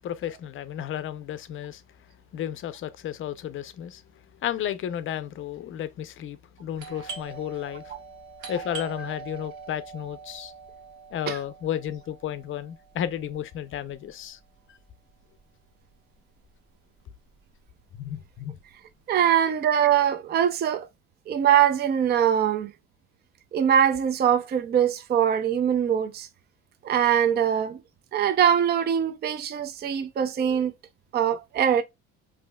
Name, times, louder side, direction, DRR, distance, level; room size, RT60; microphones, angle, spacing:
voice 1, 0.0-1.8 2.3-4.0 4.4-7.9 8.5-10.5 11.1-14.4 18.0-18.6, left 10 dB, 45° left, 0.5 m, -33 dB
Doorbell, 6.7-16.1 16.4-16.5 17.1-17.5 17.8-19.2, right 5 dB, 75° right, 1.2 m, -43 dB
voice 2, 19.1-20.9 21.3-22.7 23.5-26.3 26.8-27.8 28.1-30.7 31.1-31.8, right 9 dB, 35° right, 0.5 m, -22 dB
5.2 x 2.7 x 2.2 m
cardioid pair, 125°, 30 cm